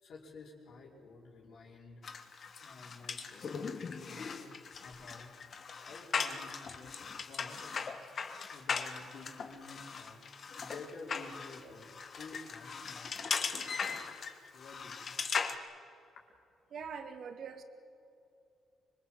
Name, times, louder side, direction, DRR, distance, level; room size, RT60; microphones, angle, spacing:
voice 1, 0.0-2.0 2.6-3.5 3.7-4.4 4.8-5.4 5.8-7.6 8.4-10.2 10.6-13.2 13.4-14.1 14.5-15.2, left 3 dB, 65° left, -1 dB, 5.1 m, -51 dB
sound 1, 2.0-15.5, left 5 dB, 50° left, 1.7 m, -39 dB
voice 2, 16.7-17.6, right 6 dB, 60° right, 8 dB, 2.2 m, -43 dB
25.5 x 22.0 x 7.7 m, 2.6 s
cardioid pair, 90°, 0 cm